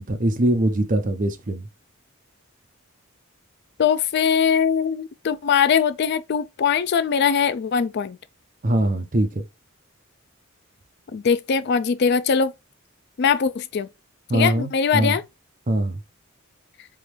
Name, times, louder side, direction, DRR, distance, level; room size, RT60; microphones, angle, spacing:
voice 1, 0.0-1.7 8.6-9.4 14.3-15.2 15.7-16.0, right 1 dB, 40° right, 0.7 m, -22 dB
voice 2, 3.8-8.2 11.1-12.5 13.2-13.9 14.3-15.2, left 6 dB, 55° left, 0.4 m, -21 dB
4.0 x 3.7 x 3.1 m
head